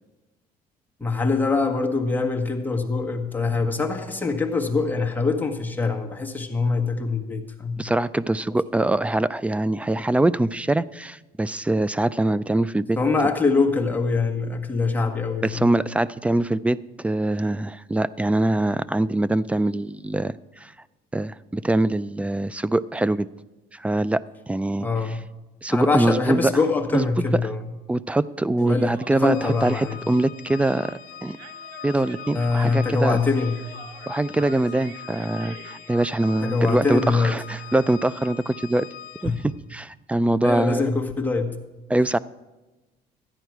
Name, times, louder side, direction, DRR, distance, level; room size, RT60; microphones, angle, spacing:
voice 1, 1.0-7.8 13.0-15.8 24.8-25.3 25.7-27.6 28.6-30.1 32.3-33.7 36.4-37.7 39.2-39.4 40.4-41.6, left 4 dB, 10° left, 1 dB, 1.4 m, -24 dB
voice 2, 7.8-13.0 15.4-20.7 21.1-23.3 23.7-24.9 25.6-26.5 26.9-27.1 27.9-31.4 31.8-33.2 34.1-38.9 39.2-39.3 39.7-40.9 41.9-42.2, right 1 dB, 10° right, 18 dB, 0.3 m, -23 dB
Human voice, 28.6-35.9, right 5 dB, 90° right, 1.1 m, -46 dB
Organ, 29.2-39.6, left 9 dB, 55° left, 0.7 m, -42 dB
13.5 x 9.9 x 4.6 m, 1.1 s
cardioid pair, 110°, 17 cm